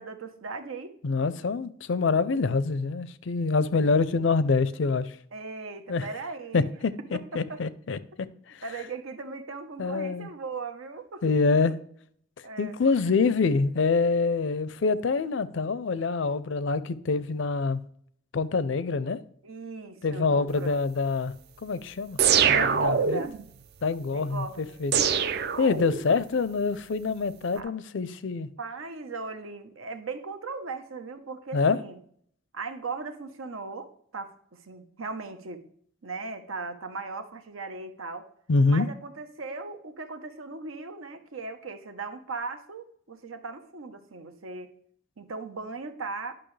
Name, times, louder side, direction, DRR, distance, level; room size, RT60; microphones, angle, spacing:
voice 1, 0.0-1.0 5.3-6.6 7.1-7.6 8.6-11.2 11.5-11.6 12.4-12.8 13.2-13.3 19.4-20.8 22.5-23.3 24.1-24.8 27.5-27.7 28.6-32.0 32.5-35.6 36.0-38.3 38.7-44.7 45.2-46.3, right 3 dB, 85° right, 9 dB, 0.9 m, -38 dB
voice 2, 1.0-5.1 5.9-6.1 6.5-8.0 9.8-10.3 11.2-11.7 12.6-17.8 18.3-19.2 20.0-21.3 21.6-22.2 22.5-23.2 23.8-24.9 25.6-28.5 31.5-31.8 38.5-38.9, left 4 dB, 65° left, 16 dB, 0.5 m, -25 dB
sound 1, 22.2-23.4 24.9-26.2, right 7 dB, 50° right, 0.4 m, -24 dB
10.0 x 5.9 x 3.2 m, 0.64 s
head